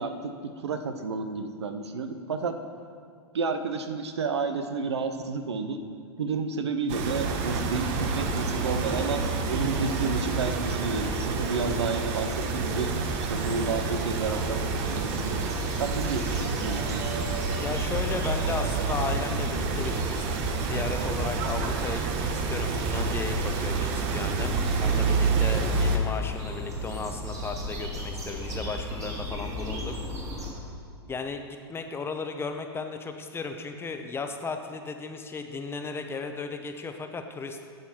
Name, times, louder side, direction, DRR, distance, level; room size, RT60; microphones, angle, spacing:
voice 1, 0.0-2.6 3.3-5.8 6.2-12.9 13.2-15.5 15.7-17.3, right 4 dB, 85° right, 8 dB, 0.7 m, -31 dB
sound 1, 6.9-26.0, right 4 dB, 50° right, 1.1 m, -28 dB
sound 2, 12.5-30.5, left 1 dB, 20° right, 1.9 m, -36 dB
voice 2, 17.6-30.0 30.5-30.6 31.1-37.6, left 4 dB, 15° left, 6 dB, 0.8 m, -35 dB
11.5 x 7.5 x 4.4 m, 2.2 s
hypercardioid pair, 105°, 14 cm